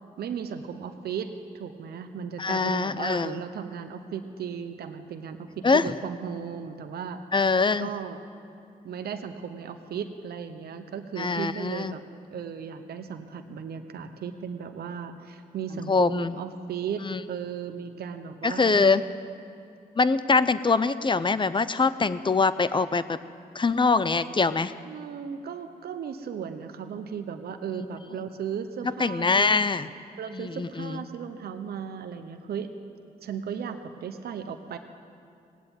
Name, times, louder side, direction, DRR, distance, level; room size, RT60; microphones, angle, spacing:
voice 1, 0.2-7.2 7.8-8.2 8.8-12.0 12.3-19.0 24.8-29.6 30.2-32.7 33.2-34.8, right 7 dB, 90° right, 7 dB, 0.8 m, -36 dB
voice 2, 2.4-3.4 5.6-5.9 7.3-7.9 11.2-11.9 15.9-16.4 17.0-17.2 18.4-19.0 20.0-23.2 23.6-24.7 29.0-29.9 30.3-31.0, left 4 dB, 30° left, 14 dB, 0.6 m, -23 dB
18.5 x 8.2 x 8.9 m, 2.5 s
cardioid pair, 60°, 16 cm